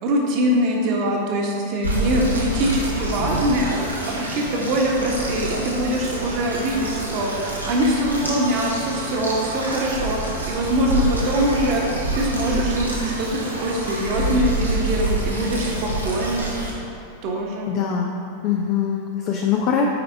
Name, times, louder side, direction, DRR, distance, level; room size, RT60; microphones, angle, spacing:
voice 1, 0.0-3.7 4.0-7.3 7.6-10.2 10.5-11.8 12.1-16.5 17.2-17.7, right 1 dB, 40° right, -1 dB, 1.4 m, -23 dB
sound 1, 1.8-16.7, right 1 dB, 85° right, 1.3 m, -27 dB
voice 2, 17.7-19.9, left 7 dB, 45° left, 0 dB, 0.6 m, -23 dB
8.6 x 4.7 x 4.8 m, 2.5 s
figure-of-eight pair, 90°, 0 cm